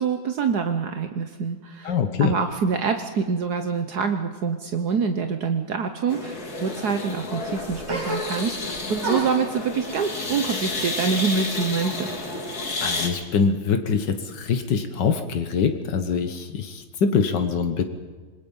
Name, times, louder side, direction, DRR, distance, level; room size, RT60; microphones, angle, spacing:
voice 1, 0.0-12.1, right 5 dB, 65° right, 7 dB, 1.5 m, -26 dB
voice 2, 1.8-2.3 12.8-17.8, left 6 dB, 85° left, 7 dB, 1.9 m, -24 dB
sound 1, 6.1-13.1, left 3 dB, 60° left, 3.1 m, -31 dB
sound 2, 7.9-8.7 9.0-11.7 12.0-12.9, right 2 dB, 80° right, 7.5 m, -33 dB
26.0 x 20.5 x 5.5 m, 1.4 s
omnidirectional pair, 1.8 m